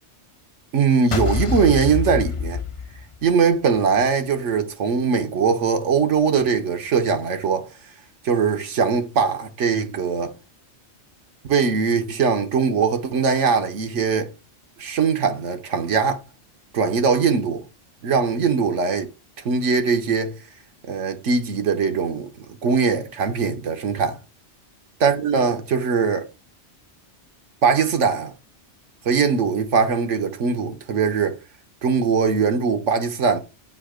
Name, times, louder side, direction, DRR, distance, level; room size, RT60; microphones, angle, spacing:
voice 1, 0.7-2.6 3.2-7.7 8.2-10.3 11.5-14.3 14.8-16.2 16.7-17.6 18.0-19.1 19.4-20.4 20.9-24.2 25.0-26.3 27.6-28.3 29.0-31.4 31.8-33.4, right 5 dB, 90° right, 1.3 m, -21 dB
sound 1, 1.1-3.4, left 5 dB, 40° left, 0.4 m, -26 dB
8.3 x 2.8 x 4.9 m
omnidirectional pair, 1.2 m